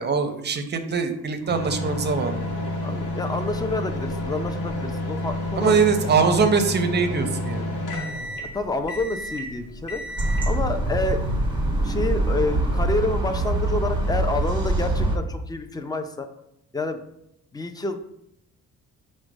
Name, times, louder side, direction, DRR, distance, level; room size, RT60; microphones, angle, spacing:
voice 1, 0.0-2.4 5.6-7.6, right 5 dB, 35° right, 7 dB, 0.6 m, -22 dB
sound 1, 1.5-10.7, left 1 dB, 85° left, 1.0 m, -30 dB
voice 2, 2.8-5.8 8.4-10.2 10.5-11.2 11.8-16.3 16.7-17.0 17.5-18.0, left 2 dB, 15° left, 7 dB, 0.4 m, -28 dB
sound 2, 10.2-15.2, right 2 dB, 15° right, 0.9 m, -24 dB
4.9 x 2.2 x 4.6 m, 0.78 s
cardioid pair, 90°, 30 cm